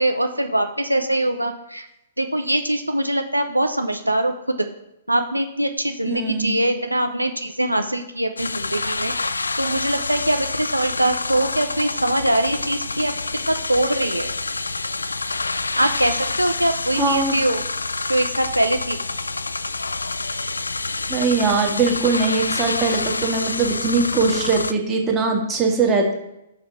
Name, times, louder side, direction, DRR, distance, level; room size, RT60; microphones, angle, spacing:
voice 1, 0.0-1.9 2.2-4.7 5.1-14.3 15.8-17.6 18.1-19.0, right 1 dB, 85° right, 6 dB, 0.5 m, -22 dB
voice 2, 6.0-6.5 17.0-17.3 21.1-26.1, right 4 dB, 20° right, 1 dB, 1.5 m, -21 dB
sound 1, 8.4-24.7, left 3 dB, 75° left, 0.3 m, -27 dB
5.6 x 4.8 x 5.7 m, 0.87 s
figure-of-eight pair, 115°, 0 cm